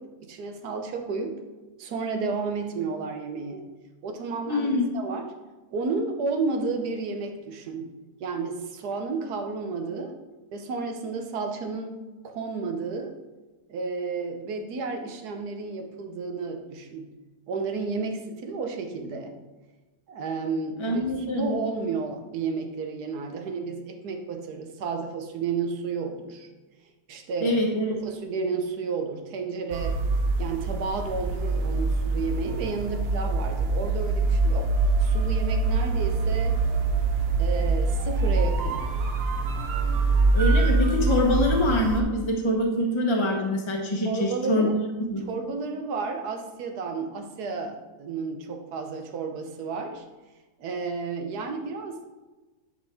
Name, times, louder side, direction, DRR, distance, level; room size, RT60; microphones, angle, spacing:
voice 1, 0.0-1.3 1.8-3.7 4.0-5.3 5.7-7.9 8.2-10.1 10.5-11.9 12.2-13.1 13.7-17.1 17.5-19.3 20.1-26.5 27.1-27.6 28.0-30.0 30.4-34.7 35.0-36.6 37.4-39.0 44.0-44.8 45.3-50.0 50.6-52.0, right 4 dB, 80° right, 5 dB, 1.4 m, -32 dB
voice 2, 4.5-4.8 20.8-21.5 27.4-28.0 40.3-44.7 45.0-45.2, left 1 dB, 20° left, 0 dB, 0.9 m, -25 dB
sound 1, 29.7-42.0, right 3 dB, 60° right, 0.6 m, -24 dB
10.0 x 4.4 x 3.5 m, 1.2 s
omnidirectional pair, 1.7 m